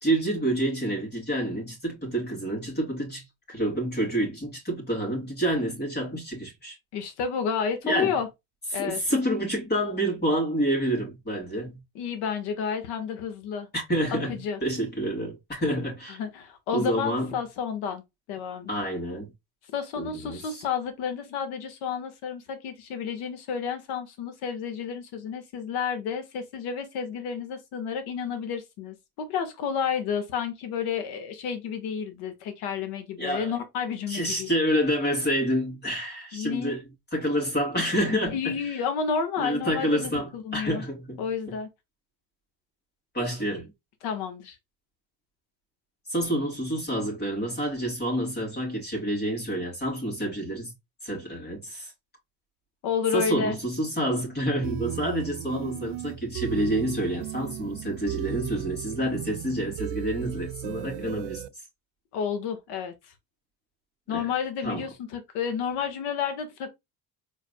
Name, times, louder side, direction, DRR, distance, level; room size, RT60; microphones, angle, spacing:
voice 1, 0.0-6.8 7.8-8.2 8.8-11.8 13.7-16.2 16.7-17.3 18.7-19.3 20.0-20.4 33.2-33.5 34.1-36.8 37.1-38.5 39.4-41.2 43.1-43.7 46.1-50.7 51.0-51.9 53.1-61.4 64.1-64.3 64.6-64.8, right 1 dB, 25° left, 3.0 m, -28 dB
voice 2, 6.9-8.3 8.7-9.0 11.9-13.7 14.1-14.6 16.1-18.0 18.3-18.7 19.7-34.5 36.3-36.8 38.3-40.8 41.2-41.7 44.0-44.6 52.8-53.6 62.1-63.1 64.1-66.7, left 6 dB, 80° left, 1.7 m, -31 dB
sound 1, 54.6-61.5, right 15 dB, 85° right, 0.5 m, -36 dB
4.9 x 4.1 x 2.3 m
cardioid pair, 125°, 38 cm